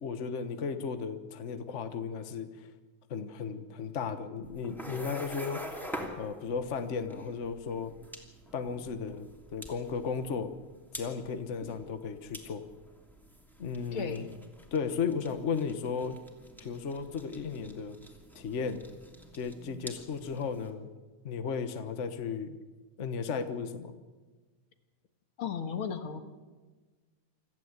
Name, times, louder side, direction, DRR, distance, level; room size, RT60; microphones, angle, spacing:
voice 1, 0.0-2.7 3.1-5.6 6.2-7.9 8.5-10.5 10.9-12.6 13.6-14.2 14.7-16.2 16.6-18.0 18.3-18.8 19.3-20.9 21.2-22.6 23.0-23.9, left 5 dB, 70° left, 9 dB, 0.7 m, -35 dB
sound 1, 4.4-20.7, equal, ahead, 2.4 m, -46 dB
voice 2, 13.9-14.3 25.4-26.2, left 6 dB, 50° left, 7 dB, 2.2 m, -35 dB
26.5 x 15.0 x 8.1 m, 1.3 s
omnidirectional pair, 3.3 m